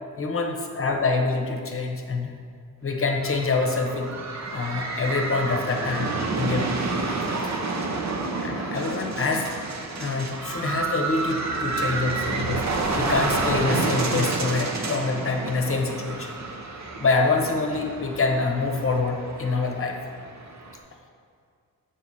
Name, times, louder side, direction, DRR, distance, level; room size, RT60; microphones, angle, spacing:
voice 1, 0.2-2.3 2.8-4.2 4.4-6.7 7.1-7.2 8.4-9.5 10.0-12.7 12.9-16.3 17.0-20.0, left 3 dB, 40° left, 3 dB, 0.9 m, -26 dB
sound 1, 3.1-20.8, right 3 dB, 50° right, 0.8 m, -29 dB
7.2 x 5.5 x 4.1 m, 2.2 s
wide cardioid pair, 100°, 34 cm